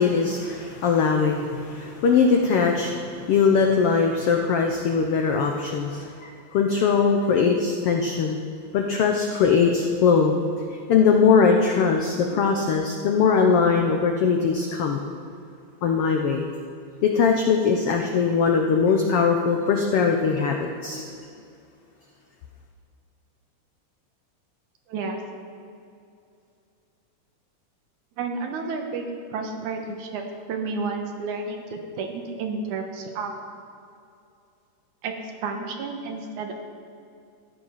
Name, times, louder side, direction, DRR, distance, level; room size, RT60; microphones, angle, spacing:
voice 1, 0.0-8.4 8.7-10.3 10.7-15.0 15.8-16.5 17.0-21.1, left 5 dB, 80° left, 3 dB, 1.3 m, -21 dB
voice 2, 24.9-25.2 28.2-29.0 29.3-30.2 30.5-33.3 35.0-35.2 35.4-36.5, right 4 dB, 75° right, 3 dB, 2.5 m, -31 dB
14.0 x 9.8 x 5.7 m, 2.5 s
omnidirectional pair, 3.7 m